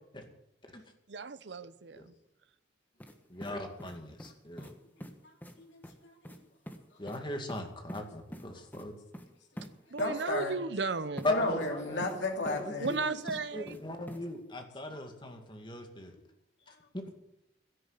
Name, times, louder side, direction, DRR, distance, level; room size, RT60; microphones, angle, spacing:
voice 1, 1.1-2.1 9.9-11.3 12.8-13.8, right 4 dB, 70° right, 14 dB, 0.8 m, -35 dB
sound 1, 3.0-3.2 3.4-4.3 4.6-4.7 5.0-5.1 5.4-5.6 5.8-6.0 6.2-6.4 6.7-6.8 7.1-7.2 7.5-8.0 8.3-8.5 8.7-8.9 9.1-9.3 9.6-9.7 10.0-10.1 11.2-11.3 11.6-12.2 12.5-13.0 13.3-13.8 14.1-14.2, equal, 10° left, 1.3 m, -44 dB
voice 2, 3.3-4.7 7.0-9.0 11.2-12.1 12.5-13.2 13.5-16.1 16.9-17.0, left 1 dB, 25° left, 4 dB, 2.2 m, -38 dB
voice 3, 5.6-6.2 10.0-10.6 11.2-12.9, left 2 dB, 90° left, 1 dB, 2.8 m, -34 dB
12.5 x 11.0 x 8.2 m, 0.84 s
head